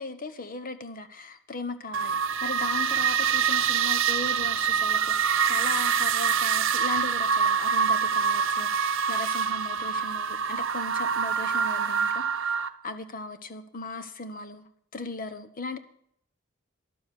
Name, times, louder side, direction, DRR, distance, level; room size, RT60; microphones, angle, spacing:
voice 1, 0.0-15.8, left 3 dB, 45° left, 11 dB, 1.0 m, -37 dB
sound 1, 1.9-12.7, right 7 dB, 65° right, 0.8 m, -25 dB
12.0 x 7.2 x 9.5 m, 0.66 s
head